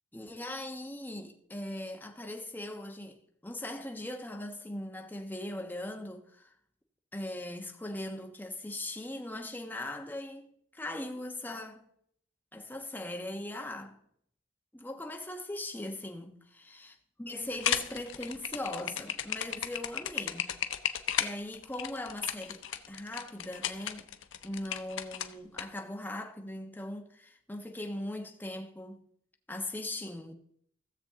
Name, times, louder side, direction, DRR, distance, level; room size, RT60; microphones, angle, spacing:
voice 1, 0.1-6.5 7.1-11.8 12.5-14.0 14.7-16.9 17.2-20.6 21.2-24.1 24.4-29.0 29.5-30.3, left 1 dB, 10° left, 1.1 m, -40 dB
sound 1, 17.5-25.6, left 9 dB, 75° left, 0.7 m, -34 dB
16.0 x 7.2 x 3.7 m
head